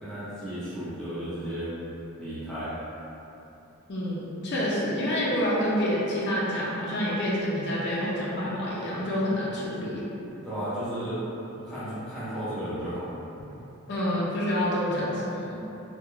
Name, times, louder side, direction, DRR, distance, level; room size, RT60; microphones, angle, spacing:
voice 1, 0.0-1.7 2.2-2.7 10.4-11.2 11.5-13.1, equal, 5° left, -14 dB, 0.7 m, -34 dB
voice 2, 3.9-10.0 13.9-15.6, equal, 50° left, -7 dB, 0.4 m, -28 dB
2.3 x 2.1 x 3.0 m, 3.0 s
head